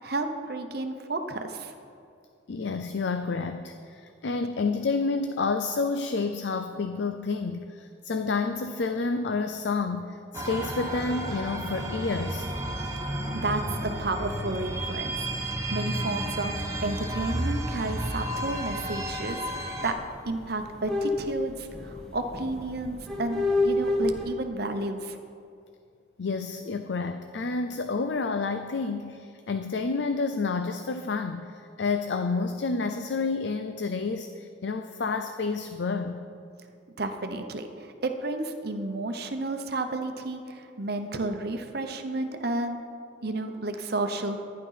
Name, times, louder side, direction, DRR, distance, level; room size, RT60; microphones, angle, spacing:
voice 1, 0.0-1.8 12.8-13.0 13.3-15.3 15.7-20.0 20.3-25.2 37.0-42.8 43.2-44.4, right 2 dB, 55° right, 6 dB, 0.9 m, -32 dB
voice 2, 2.5-12.5 26.2-36.2, left 4 dB, 65° left, 8 dB, 0.5 m, -29 dB
sound 1, 10.3-19.9, right 1 dB, 15° right, 1.0 m, -32 dB
sound 2, 17.1-24.2, left 2 dB, 5° left, 1.9 m, -30 dB
12.0 x 10.5 x 5.7 m, 2.4 s
head